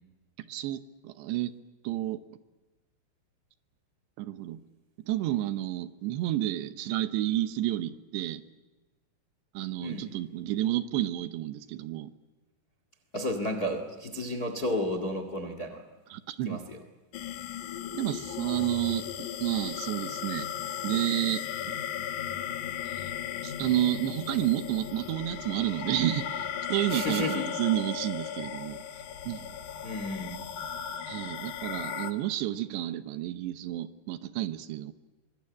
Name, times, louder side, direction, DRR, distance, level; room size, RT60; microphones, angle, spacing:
voice 1, 0.4-1.5 1.8-2.2 4.2-4.6 5.0-8.4 9.5-12.1 16.1-16.6 17.9-20.5 20.8-21.8 22.8-23.1 23.4-28.8 29.3-29.6 31.1-34.9, right 14 dB, 75° right, 11 dB, 3.0 m, -30 dB
voice 2, 13.1-15.8 16.4-16.8 26.9-27.4 29.8-30.4, left 1 dB, 45° left, 7 dB, 1.1 m, -32 dB
sound 1, 17.1-32.1, left 9 dB, 90° left, 1.7 m, -36 dB
24.0 x 23.0 x 8.6 m, 1.2 s
omnidirectional pair, 5.2 m